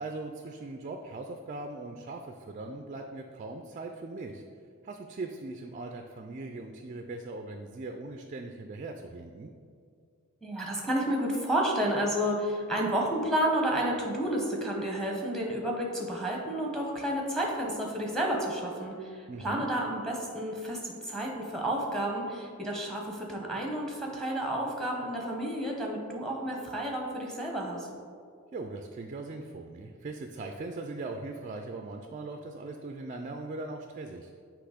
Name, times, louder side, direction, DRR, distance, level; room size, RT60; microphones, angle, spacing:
voice 1, 0.0-4.4 4.8-9.5 19.3-19.7 28.5-34.4, right 2 dB, 35° right, 4 dB, 0.3 m, -40 dB
voice 2, 10.4-27.9, right 1 dB, 5° left, -1 dB, 0.8 m, -31 dB
7.9 x 3.0 x 4.9 m, 2.2 s
head